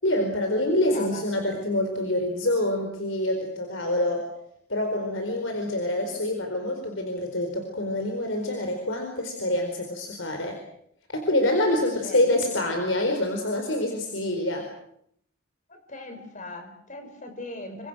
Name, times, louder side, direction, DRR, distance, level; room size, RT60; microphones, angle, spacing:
voice 1, 0.0-4.2 4.7-10.6 11.1-14.7, left 1 dB, 70° left, 4 dB, 4.6 m, -26 dB
voice 2, 0.8-1.2 12.0-12.7 15.7-17.9, left 2 dB, 40° left, 7 dB, 5.6 m, -40 dB
29.5 x 25.0 x 6.4 m, 0.71 s
head